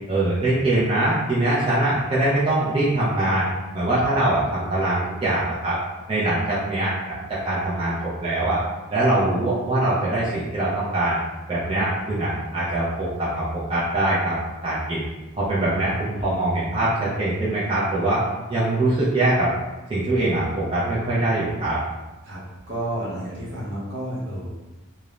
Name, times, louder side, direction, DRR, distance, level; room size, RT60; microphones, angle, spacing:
voice 1, 0.1-3.5 3.7-5.8 6.1-7.9 8.2-8.6 8.9-11.2 11.5-13.4 13.7-14.4 14.6-15.1 15.3-18.2 18.5-19.5 19.9-21.8, right 1 dB, 25° right, -9 dB, 0.4 m, -22 dB
voice 2, 22.7-24.5, right 1 dB, 55° right, -5 dB, 0.7 m, -30 dB
2.4 x 2.0 x 3.0 m, 1.1 s
head